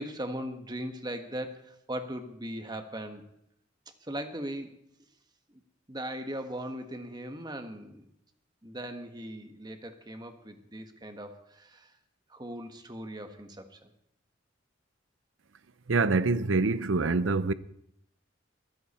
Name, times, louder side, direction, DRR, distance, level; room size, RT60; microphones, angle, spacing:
voice 1, 0.0-3.2 4.0-4.8 5.5-5.6 5.9-8.1 8.6-11.9 12.3-13.9, right 1 dB, 20° right, 1.5 m, -39 dB
voice 2, 15.9-17.5, right 3 dB, 85° right, 0.7 m, -25 dB
21.5 x 14.0 x 4.4 m
head